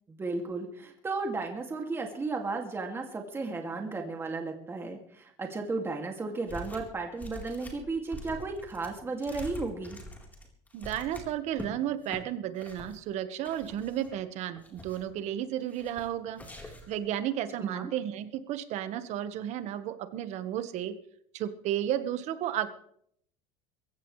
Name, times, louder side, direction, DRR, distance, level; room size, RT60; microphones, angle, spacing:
voice 1, 0.1-10.0 17.6-17.9, right 3 dB, 15° right, 2 dB, 2.4 m, -34 dB
sound 1, 6.5-6.9 7.2-11.7 12.0-12.2 12.6-13.0 13.4-14.2 14.6-15.2 15.7-16.1 16.4-17.0, left 1 dB, 10° left, 4.0 m, -45 dB
voice 2, 10.7-20.9 21.3-22.7, right 11 dB, 50° right, 10 dB, 1.5 m, -33 dB
22.0 x 16.0 x 3.3 m, 0.69 s
cardioid pair, 140°, 15 cm